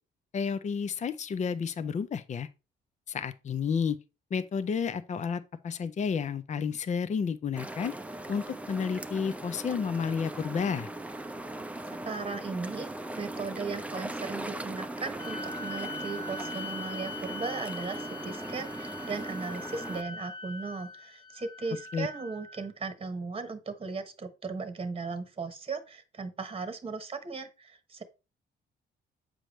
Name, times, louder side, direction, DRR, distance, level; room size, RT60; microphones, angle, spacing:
voice 1, 0.3-2.5 3.1-4.0 4.3-7.9 8.3-10.9 21.9-22.1, left 6 dB, 35° left, 0.5 m, -31 dB
sound 1, 7.5-20.0, right 1 dB, 5° right, 0.6 m, -39 dB
voice 2, 11.9-12.9 13.2-28.0, right 4 dB, 30° right, 1.1 m, -37 dB
sound 2, 15.2-22.7, left 3 dB, 20° left, 1.4 m, -42 dB
7.7 x 4.9 x 3.1 m
cardioid pair, 90°, 20 cm